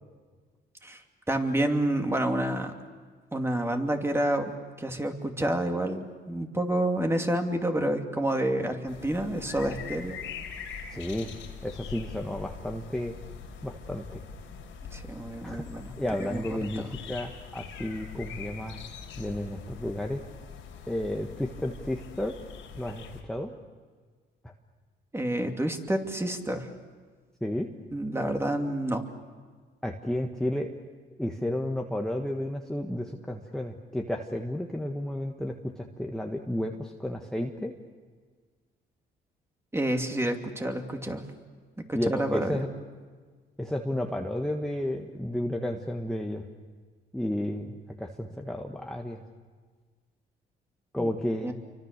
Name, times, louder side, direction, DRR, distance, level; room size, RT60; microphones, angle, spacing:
voice 1, 0.8-2.7 3.3-4.5 4.8-10.2 14.9-15.9 16.2-16.9 25.1-26.7 27.9-29.0 39.7-41.2 41.9-42.7 51.0-51.1 51.4-51.5, right 1 dB, 10° right, 4 dB, 2.6 m, -29 dB
sound 1, 8.9-23.2, left 6 dB, 90° left, 4.0 m, -43 dB
voice 2, 10.9-11.3 11.6-13.1 13.6-14.2 15.4-15.6 16.0-18.8 19.2-20.2 20.9-22.4 22.8-23.5 27.4-27.7 29.8-30.7 31.2-37.7 41.9-42.7 43.6-46.4 47.1-49.2 50.9-51.5, left 1 dB, 5° left, 1 dB, 1.6 m, -32 dB
28.5 x 24.5 x 6.8 m, 1.5 s
cardioid pair, 90°, 20 cm